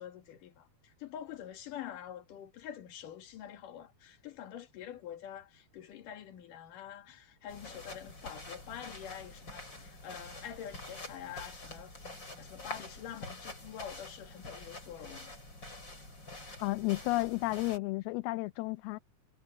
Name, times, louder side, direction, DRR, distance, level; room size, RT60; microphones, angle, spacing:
voice 1, 0.0-11.9 12.4-15.3, left 10 dB, 60° left, 3.3 m, -46 dB
sound 1, 7.5-17.8, left 2 dB, 25° left, 8.6 m, -47 dB
voice 2, 16.6-19.0, left 22 dB, 80° left, 2.4 m, -32 dB
omnidirectional pair, 4.6 m